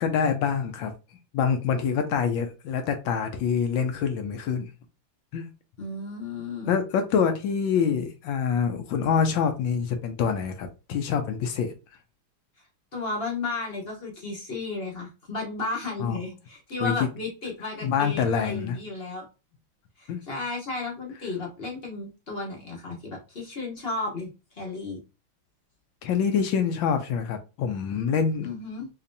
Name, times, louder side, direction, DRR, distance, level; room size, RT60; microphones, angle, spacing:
voice 1, 0.0-0.9 1.3-4.7 5.3-5.5 6.7-11.7 16.0-16.2 16.8-16.9 17.8-18.8 20.1-20.2 26.0-28.5, left 6 dB, 75° left, 1.2 m, -26 dB
voice 2, 5.8-6.8 12.9-19.3 20.0-24.3 24.5-25.0 28.4-28.9, left 3 dB, 40° left, 0.8 m, -33 dB
4.2 x 2.9 x 2.6 m
omnidirectional pair, 2.3 m